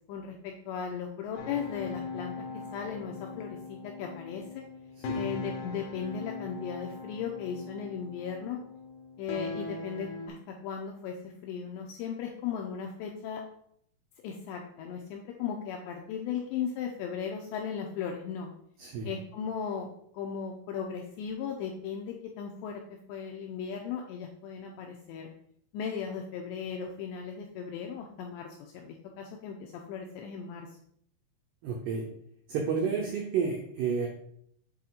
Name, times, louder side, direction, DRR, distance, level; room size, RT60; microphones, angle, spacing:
voice 1, 0.1-4.6 5.1-8.6 9.2-13.4 14.2-18.5 19.0-22.8 23.1-25.3 25.7-30.7, left 7 dB, 90° left, 1 dB, 2.5 m, -37 dB
sound 1, 1.4-10.3, left 4 dB, 70° left, 2.5 m, -40 dB
voice 2, 18.8-19.1 31.6-32.0 32.5-34.1, right 6 dB, 85° right, 0 dB, 2.3 m, -30 dB
8.0 x 4.2 x 3.9 m, 0.69 s
omnidirectional pair, 5.6 m